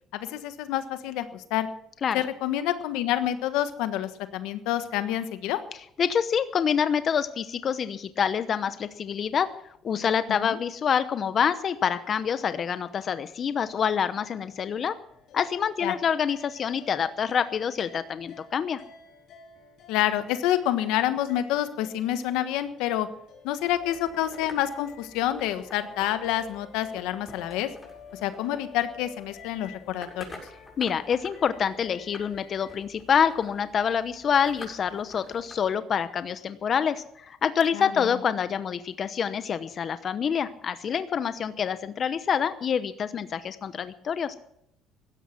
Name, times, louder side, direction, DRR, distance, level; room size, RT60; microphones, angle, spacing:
voice 1, 0.1-1.7 2.1-5.6 10.4-10.6 15.8-15.9 19.9-23.1 23.4-27.7 28.2-30.4 37.7-38.1, left 12 dB, 85° left, 10 dB, 1.3 m, -28 dB
voice 2, 6.0-9.5 9.8-14.9 15.3-18.8 30.8-44.3, left 7 dB, 45° left, 12 dB, 0.8 m, -26 dB
sound 1, 15.1-32.8, left 6 dB, 65° left, 4.1 m, -50 dB
sound 2, 23.7-35.7, left 1 dB, 20° left, 7.3 m, -49 dB
16.0 x 13.0 x 5.9 m, 0.72 s
cardioid pair, 100°, 0 cm